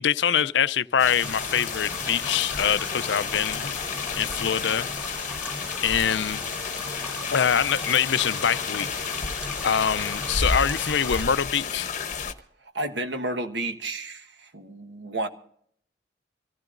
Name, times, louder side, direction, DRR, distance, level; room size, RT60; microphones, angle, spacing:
voice 1, 0.0-3.7 4.2-4.9 5.3-6.4 7.3-9.0 9.6-11.9, left 8 dB, 75° left, 0.5 m, -24 dB
sound 1, 1.0-12.3, left 5 dB, 40° left, 0.9 m, -32 dB
sound 2, 1.2-11.2, equal, 5° right, 3.1 m, -37 dB
voice 2, 12.7-15.3, right 2 dB, 70° right, 1.4 m, -31 dB
26.0 x 15.0 x 2.6 m
head